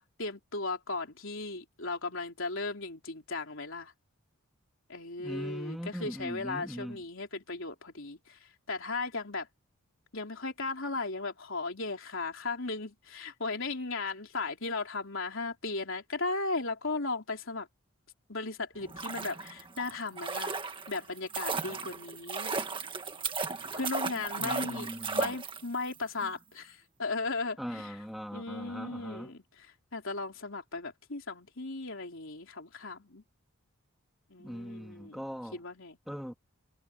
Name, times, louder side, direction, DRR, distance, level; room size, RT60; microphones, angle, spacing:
voice 1, 0.0-3.9 4.9-9.5 10.1-17.7 18.3-20.6 20.9-22.5 23.7-28.0 28.3-29.4 29.9-33.2 34.3-35.2 35.5-36.0, left 3 dB, 60° left, 3.9 m, -36 dB
voice 2, 5.2-7.0 24.4-25.3 27.6-29.3 34.4-35.6 36.1-36.3, equal, ahead, 2.9 m, -40 dB
sound 1, 18.8-25.9 26.2-26.3, right 4 dB, 20° right, 1.6 m, -35 dB
head